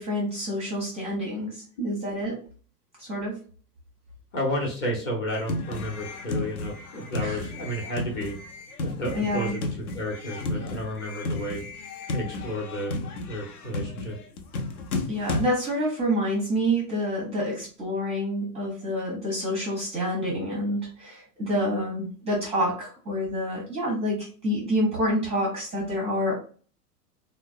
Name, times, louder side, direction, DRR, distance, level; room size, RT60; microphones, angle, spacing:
voice 1, 0.0-2.4 3.0-3.4 7.2-7.4 9.1-9.5 15.1-26.3, equal, 15° right, -3 dB, 0.6 m, -28 dB
voice 2, 4.3-8.4 8.8-11.6 12.1-14.2 18.8-18.9, equal, 20° left, -1 dB, 0.7 m, -32 dB
sound 1, 5.3-15.5, left 2 dB, 65° left, 0.6 m, -33 dB
3.2 x 2.1 x 2.3 m, 0.40 s
figure-of-eight pair, 95°, 47 cm